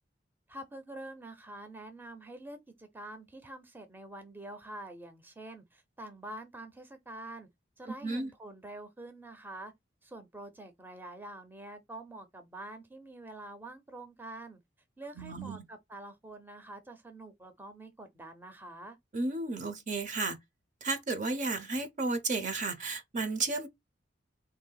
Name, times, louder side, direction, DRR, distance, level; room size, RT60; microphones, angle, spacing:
voice 1, 0.5-7.5 7.8-9.7 10.0-14.6 15.0-19.0, right 1 dB, 10° right, 0.6 m, -46 dB
voice 2, 15.2-15.6 19.1-20.4 20.8-23.7, right 3 dB, 45° right, 0.7 m, -33 dB
3.5 x 2.7 x 3.9 m
head